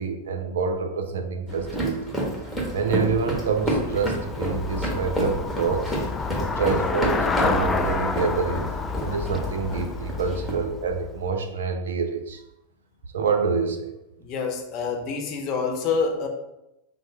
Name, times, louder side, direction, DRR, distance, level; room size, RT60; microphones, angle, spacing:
voice 1, 0.0-2.2 2.7-5.9 6.4-8.6 9.0-12.4 13.1-13.9, right 5 dB, 75° right, 7 dB, 0.5 m, -27 dB
sound 1, 1.5-10.5, right 1 dB, ahead, 1.3 m, -31 dB
Traffic noise roadway noise / Bicycle, 2.3-11.5, left 4 dB, 20° left, 0.3 m, -30 dB
voice 2, 14.2-16.3, left 5 dB, 45° left, 4 dB, 0.8 m, -27 dB
5.6 x 2.0 x 3.3 m, 0.88 s
hypercardioid pair, 95°, 0 cm